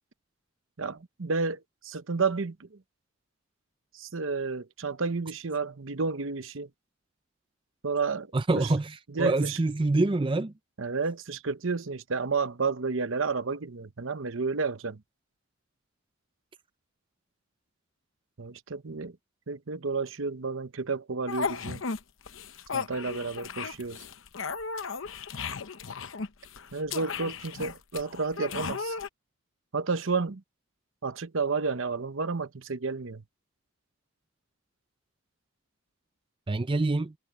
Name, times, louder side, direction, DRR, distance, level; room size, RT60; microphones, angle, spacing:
voice 1, 0.8-2.8 3.9-6.7 7.8-8.7 9.1-9.6 10.8-15.0 18.4-19.2 19.5-21.8 22.7-24.0 26.7-29.0 29.7-30.4 31.0-33.2, right 4 dB, 70° right, 0.9 m, -31 dB
voice 2, 8.3-10.5 36.5-37.1, right 2 dB, 25° right, 0.5 m, -26 dB
sound 1, 21.3-22.0 22.3-29.1, left 5 dB, 70° left, 0.9 m, -35 dB
head